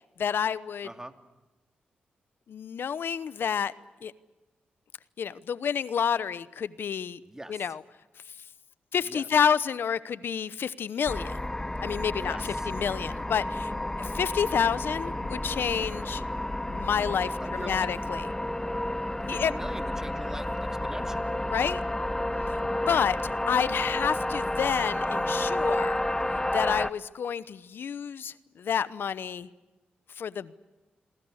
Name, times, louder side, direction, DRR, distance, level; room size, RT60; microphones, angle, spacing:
voice 1, 0.2-0.9 2.5-3.7 4.0-4.1 5.2-7.2 7.5-7.8 8.9-11.4 11.8-13.7 14.0-16.2 16.7-18.3 19.3-19.5 21.5-21.8 22.9-23.2 23.5-26.0 26.5-29.5 30.2-30.5, left 7 dB, 70° left, 17 dB, 0.9 m, -29 dB
voice 2, 0.8-1.1 7.2-7.7 9.0-9.3 12.1-12.7 15.2-15.3 17.2-17.9 19.3-21.3 22.8-23.0, right 1 dB, 15° right, 7 dB, 2.6 m, -42 dB
sound 1, 11.1-26.9, left 1 dB, 15° left, 1.0 m, -31 dB
29.0 x 23.0 x 6.5 m, 1.2 s
supercardioid pair, 50°, 4 cm